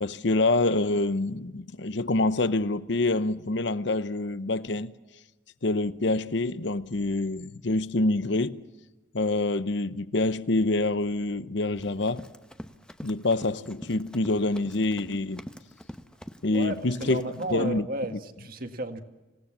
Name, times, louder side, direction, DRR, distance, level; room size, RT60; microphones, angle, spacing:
voice 1, 0.0-4.9 5.6-8.6 9.1-12.3 13.0-15.4 16.4-17.8, left 2 dB, 65° left, 0.9 m, -26 dB
Run, 11.8-17.6, equal, 5° left, 0.9 m, -45 dB
voice 2, 16.5-19.0, right 1 dB, 45° right, 1.8 m, -33 dB
26.5 x 17.5 x 7.4 m
head